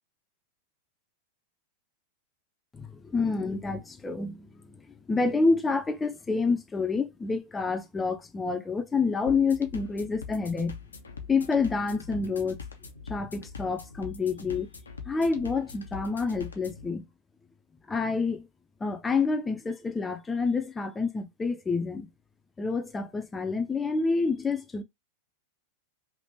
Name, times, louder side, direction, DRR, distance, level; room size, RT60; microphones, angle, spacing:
voice 1, 2.7-4.8 5.1-10.8 11.3-12.6 13.1-14.7 15.1-17.0 17.9-18.5 18.8-22.1 22.6-24.8, left 4 dB, 15° left, 0.6 m, -28 dB
sound 1, 9.3-16.9, left 5 dB, 75° left, 0.6 m, -43 dB
3.3 x 2.9 x 2.8 m
figure-of-eight pair, 90°, 0 cm